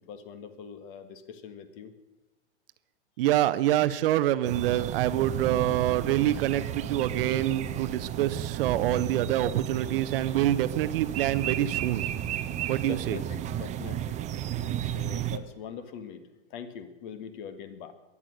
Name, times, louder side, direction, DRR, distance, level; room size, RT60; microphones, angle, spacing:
voice 1, 0.1-1.9 12.8-14.2 14.8-16.2 16.5-17.9, left 7 dB, 50° left, 11 dB, 1.8 m, -42 dB
voice 2, 3.2-12.0 12.7-13.2, right 13 dB, 55° right, 14 dB, 0.8 m, -26 dB
sound 1, 4.4-15.4, right 10 dB, 20° right, 0.7 m, -33 dB
22.0 x 8.5 x 6.4 m, 1.1 s
hypercardioid pair, 125°, 35 cm